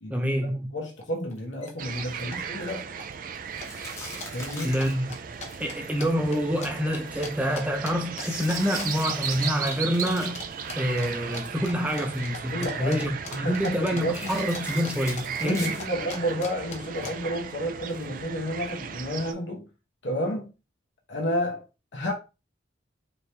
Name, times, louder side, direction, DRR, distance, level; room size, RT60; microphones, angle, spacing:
voice 1, 0.1-0.7 4.6-5.1 5.6-10.4 10.8-15.8, equal, 10° right, 0.7 m, -27 dB
voice 2, 0.7-2.9 4.3-4.8 12.5-14.3 15.4-19.7 20.0-20.5 21.1-21.6 21.9-22.1, equal, 70° left, 1.0 m, -31 dB
sound 1, 1.0-1.1 1.3-1.7 2.0-2.7 3.0-3.4 3.6-8.2 8.5-9.2 9.4-9.8 10.0-10.4 10.7-14.9 15.2-17.1, left 2 dB, 35° left, 0.8 m, -39 dB
sound 2, 1.8-19.3, right 7 dB, 45° right, 0.4 m, -36 dB
sound 3, 3.5-6.8 8.2-11.5 11.8-12.2 14.1-15.9 16.3-16.4 17.9-18.1, left 2 dB, 15° left, 1.1 m, -42 dB
4.3 x 2.9 x 3.4 m
head